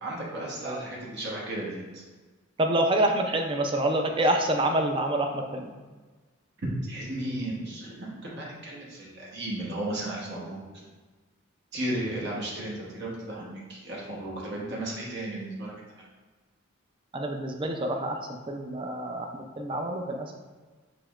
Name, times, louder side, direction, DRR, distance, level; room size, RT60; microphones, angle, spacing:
voice 1, 0.0-2.0 6.8-10.8 11.7-15.7, right 1 dB, 55° right, -5 dB, 0.9 m, -34 dB
voice 2, 2.6-5.7 17.1-18.2 18.5-20.3, right 1 dB, 25° right, 4 dB, 0.4 m, -27 dB
6.8 x 3.0 x 2.4 m, 1.3 s
head